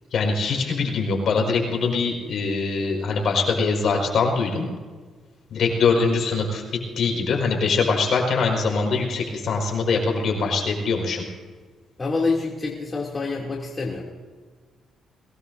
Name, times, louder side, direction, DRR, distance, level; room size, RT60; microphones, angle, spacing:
voice 1, 0.1-4.7 5.5-6.6 7.0-11.2, left 4 dB, 60° left, 1 dB, 5.2 m, -23 dB
voice 2, 12.0-14.0, left 3 dB, 30° left, -3 dB, 2.7 m, -26 dB
22.5 x 18.5 x 2.7 m, 1.4 s
cardioid pair, 95°, 0 cm